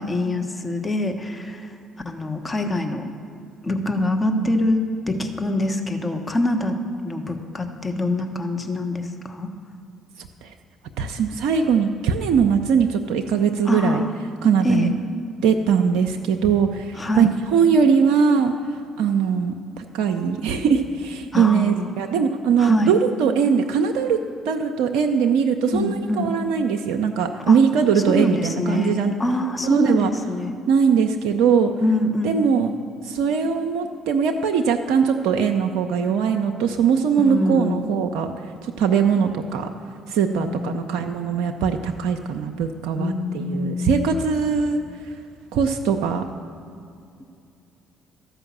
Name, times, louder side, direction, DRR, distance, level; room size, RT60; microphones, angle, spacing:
voice 1, 0.0-1.8 2.0-3.0 3.6-4.8 5.1-6.7 7.0-9.5 13.6-14.1 14.6-14.9 16.9-17.3 21.3-22.0 22.6-23.0 25.7-26.3 27.5-27.6 27.9-30.5 31.8-32.4 37.2-38.0 40.3-40.9 43.0-44.2, left 1 dB, 25° left, 5 dB, 1.1 m, -24 dB
voice 2, 11.0-14.0 14.4-14.9 15.4-18.5 19.0-24.2 24.5-29.1 29.6-30.1 30.7-31.7 32.2-32.7 33.0-38.3 38.6-39.7 40.1-44.8 45.5-46.2, right 6 dB, 70° right, 4 dB, 0.5 m, -21 dB
13.0 x 5.4 x 7.2 m, 2.5 s
hypercardioid pair, 55°, 0 cm